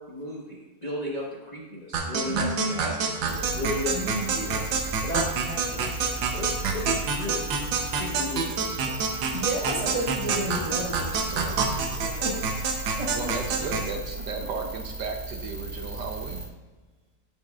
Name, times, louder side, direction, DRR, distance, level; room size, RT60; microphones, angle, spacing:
voice 1, 0.1-3.9 4.3-4.6 5.0-7.5 7.9-9.0, left 1 dB, 25° left, -4 dB, 1.0 m, -35 dB
sound 1, 1.9-13.9, right 5 dB, 85° right, 1.6 m, -28 dB
voice 2, 2.2-3.0 3.9-4.3 9.3-12.6 13.0-13.3, right 1 dB, 20° right, -1 dB, 1.1 m, -32 dB
sound 2, 3.3-16.5, right 2 dB, 55° right, 2.5 m, -36 dB
voice 3, 13.1-16.4, right 4 dB, 70° right, 4 dB, 1.4 m, -34 dB
9.9 x 7.3 x 2.4 m, 1.2 s
omnidirectional pair, 2.0 m